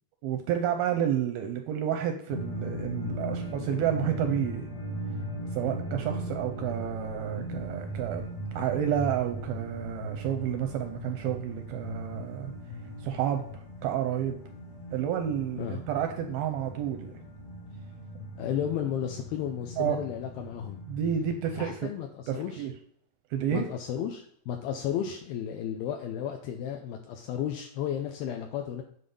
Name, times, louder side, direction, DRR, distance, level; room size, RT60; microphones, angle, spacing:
voice 1, 0.2-4.6 5.5-8.2 8.5-12.5 13.0-14.4 14.9-17.1 19.8-20.0 20.9-21.8 22.3-22.7 23.3-23.7, right 9 dB, 85° right, 5 dB, 2.2 m, -30 dB
sound 1, 2.3-21.8, right 1 dB, 60° left, 1.8 m, -38 dB
voice 2, 18.4-20.8 21.6-22.6 23.5-28.8, left 9 dB, 85° left, 3 dB, 2.3 m, -33 dB
9.3 x 4.1 x 5.3 m, 0.66 s
omnidirectional pair, 4.9 m